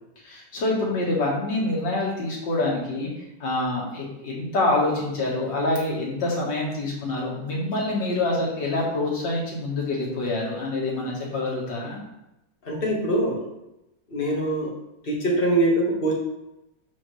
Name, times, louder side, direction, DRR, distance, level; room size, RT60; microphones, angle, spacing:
voice 1, 0.2-3.1 3.4-12.0, left 2 dB, 90° left, -4 dB, 2.5 m, -26 dB
voice 2, 12.7-13.4 14.1-14.7 15.0-16.1, right 1 dB, 30° left, -3 dB, 1.7 m, -23 dB
11.0 x 3.9 x 3.3 m, 0.88 s
omnidirectional pair, 1.9 m